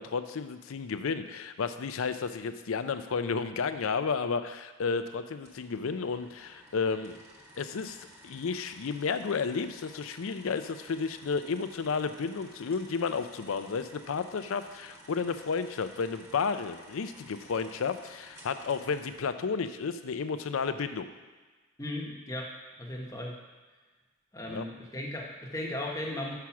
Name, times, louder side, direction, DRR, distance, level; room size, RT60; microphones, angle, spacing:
voice 1, 0.0-7.2 7.6-8.0 8.2-21.1 24.5-24.6, left 5 dB, 70° left, 10 dB, 0.5 m, -32 dB
sound 1, 5.4-19.1, equal, 15° right, 1.2 m, -54 dB
voice 2, 21.8-22.5 22.8-23.4 24.3-26.3, left 1 dB, 15° left, -1 dB, 1.0 m, -36 dB
6.2 x 5.8 x 5.9 m, 1.3 s
head